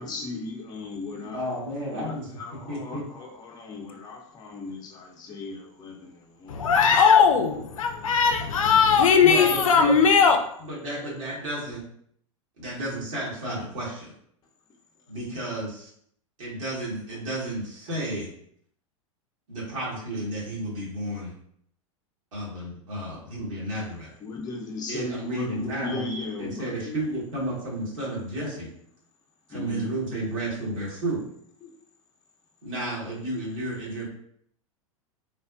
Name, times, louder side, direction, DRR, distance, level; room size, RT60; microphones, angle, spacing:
voice 1, 0.0-1.4 1.9-6.7 7.5-7.6 24.2-26.9 29.5-30.1 31.6-31.7, left 3 dB, 25° left, -1 dB, 0.6 m, -37 dB
voice 2, 1.3-2.4 2.7-3.0 9.0-10.0 10.6-11.8 12.6-14.1 15.1-15.9 16.4-18.3 19.5-21.3 22.3-24.1 24.9-26.1 26.4-28.7 29.5-31.2 32.6-34.0, right 1 dB, 70° right, -5 dB, 1.5 m, -32 dB
voice 3, 6.5-10.4, left 6 dB, 80° left, 5 dB, 0.4 m, -19 dB
3.3 x 2.1 x 2.4 m, 0.68 s
hypercardioid pair, 95°, 17 cm